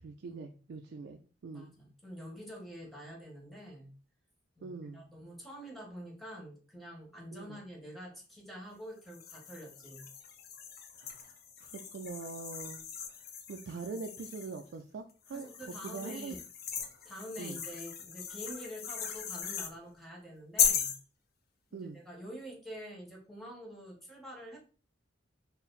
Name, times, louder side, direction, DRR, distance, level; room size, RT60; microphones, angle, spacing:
voice 1, 0.0-1.7 4.6-5.0 7.3-7.6 11.0-11.3 11.6-12.8 13.5-16.4 17.4-17.6 21.7-22.0, right 4 dB, 65° right, 4 dB, 0.3 m, -43 dB
voice 2, 1.5-3.9 4.6-10.1 15.3-16.4 17.0-20.9 21.7-24.6, equal, ahead, -2 dB, 1.2 m, -47 dB
sound 1, 9.1-14.6 15.3-19.7 20.6-21.0, left 7 dB, 50° left, 0.6 m, -37 dB
4.1 x 2.0 x 3.9 m, 0.39 s
head